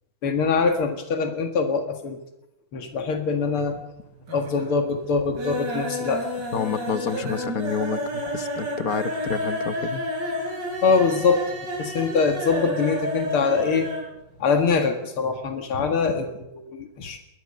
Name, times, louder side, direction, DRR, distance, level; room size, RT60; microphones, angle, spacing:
voice 1, 0.2-2.2 2.7-3.8 4.3-6.2 10.8-11.4 11.8-13.9 14.4-17.2, left 5 dB, 85° left, 5 dB, 2.7 m, -23 dB
sound 1, 3.3-3.9 4.2-4.8 5.1-14.1 14.4-14.5 14.8-14.9, equal, 55° right, 7.1 m, -30 dB
voice 2, 6.5-10.0, left 7 dB, 50° left, 11 dB, 1.4 m, -29 dB
21.0 x 20.0 x 6.7 m, 0.88 s
omnidirectional pair, 2.3 m